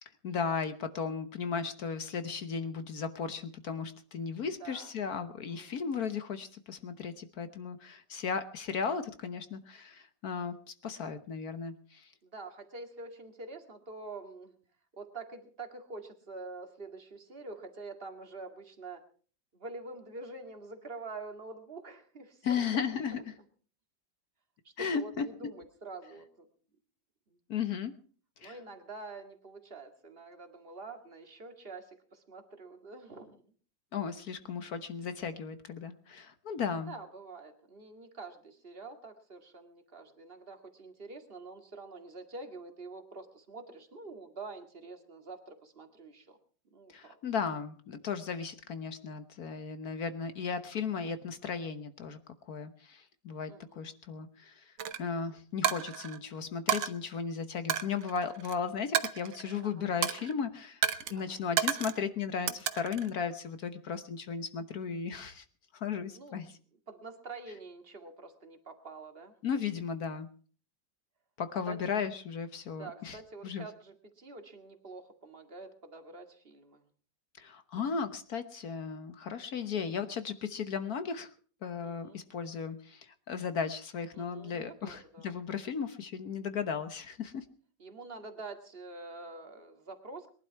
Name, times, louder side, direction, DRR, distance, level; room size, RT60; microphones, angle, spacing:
voice 1, 0.2-10.5 10.8-12.1 22.4-23.3 24.8-25.2 27.5-27.9 28.4-28.6 33.9-36.9 46.9-52.2 52.5-54.7 55.0-60.8 61.1-65.4 65.7-66.5 69.4-70.3 71.4-73.2 73.4-73.6 77.4-81.3 81.6-87.4, left 6 dB, 55° left, 10 dB, 1.5 m, -35 dB
voice 2, 4.6-4.9 5.5-6.0 12.2-14.6 14.9-19.0 19.5-22.6 23.1-23.2 24.6-26.5 27.3-27.4 28.4-33.4 36.9-46.4 46.7-47.2 53.5-54.0 59.6-59.9 61.1-61.4 66.1-66.4 66.9-69.3 71.7-72.1 72.7-76.8 77.8-77.9 81.8-82.2 84.1-85.4 87.8-90.3, right 3 dB, 30° right, 5 dB, 2.1 m, -46 dB
Coin (dropping), 54.8-55.0 55.6-56.2 56.7-56.9 57.7-58.5 58.9-59.6 60.0-60.3 60.8-61.1 61.6-62.0 62.5-63.1, right 10 dB, 85° right, 1.8 m, -31 dB
22.0 x 12.0 x 4.6 m, 0.43 s
omnidirectional pair, 2.0 m